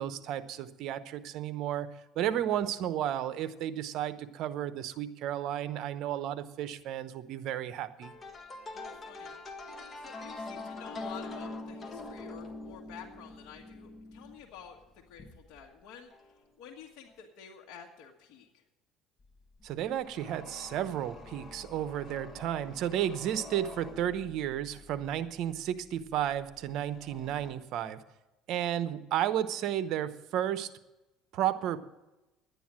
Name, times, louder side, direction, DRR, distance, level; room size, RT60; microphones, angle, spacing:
voice 1, 0.0-1.9 2.2-8.1 19.6-28.0 28.5-30.7 31.3-31.8, right 11 dB, 65° right, 13 dB, 0.8 m, -33 dB
sound 1, 8.0-15.7 16.1-16.4 17.1-17.2 19.2-27.5, left 2 dB, 30° left, 1.5 m, -46 dB
voice 2, 8.7-9.4 9.9-18.6, left 8 dB, 70° left, -1 dB, 1.5 m, -50 dB
11.0 x 9.3 x 7.4 m, 1.0 s
cardioid pair, 115°, 0 cm